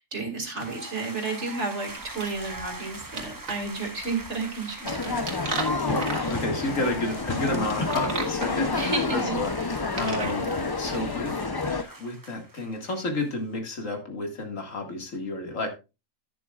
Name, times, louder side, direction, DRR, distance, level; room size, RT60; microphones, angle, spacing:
voice 1, 0.0-5.2 8.8-9.4, right 3 dB, 60° right, 4 dB, 2.6 m, -32 dB
sound 1, 0.6-13.3, right 2 dB, 15° right, 0.9 m, -43 dB
sound 2, 1.9-10.7, right 4 dB, 75° right, 2.2 m, -37 dB
sound 3, 4.8-11.8, left 3 dB, 30° left, 0.4 m, -29 dB
voice 2, 5.8-11.3 11.6-15.7, left 2 dB, 75° left, 3 dB, 2.3 m, -31 dB
11.0 x 10.0 x 2.4 m, 0.27 s
omnidirectional pair, 1.4 m